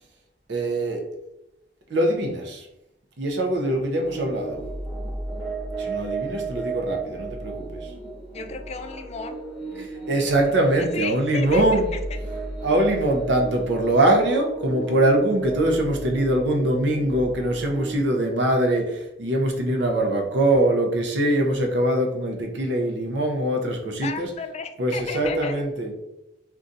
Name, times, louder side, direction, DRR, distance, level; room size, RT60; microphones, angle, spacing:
voice 1, 0.5-1.1 1.9-2.7 3.2-4.6 5.8-7.9 9.8-11.9 12.6-24.3 24.8-25.9, right 1 dB, 65° right, 2 dB, 0.6 m, -23 dB
sound 1, 4.0-18.0, right 3 dB, ahead, 1.1 m, -34 dB
voice 2, 8.3-9.4 10.7-12.2 24.0-25.6, left 5 dB, 35° left, 7 dB, 0.3 m, -34 dB
2.6 x 2.3 x 3.8 m, 0.88 s
head